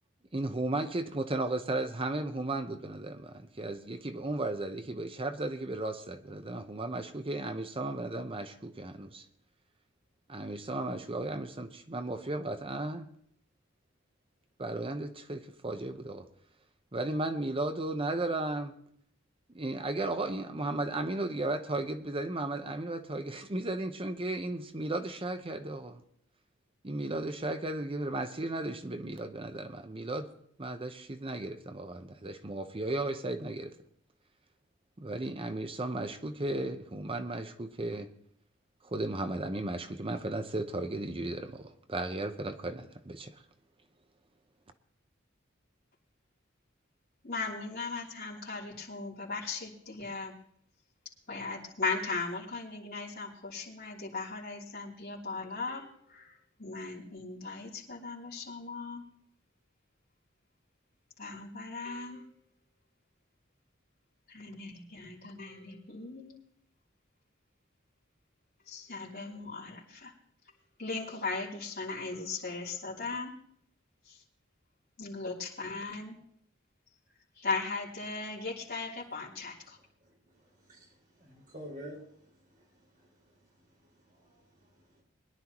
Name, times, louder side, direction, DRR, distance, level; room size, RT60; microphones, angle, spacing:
voice 1, 0.3-9.2 10.3-13.1 14.6-16.3 16.9-18.7 19.5-26.0 26.8-30.3 30.6-33.7 35.0-38.1 38.8-43.4, right 2 dB, 30° right, 0.8 m, -35 dB
voice 2, 47.2-50.3 51.3-59.0 61.2-62.3 64.3-66.4 68.7-70.1 70.8-73.3 74.0-74.2 75.0-76.1 77.3-79.8, left 4 dB, 50° left, 3.3 m, -38 dB
voice 3, 80.0-83.4 83.7-85.0, equal, 45° right, 5.0 m, -51 dB
21.5 x 11.0 x 3.0 m
head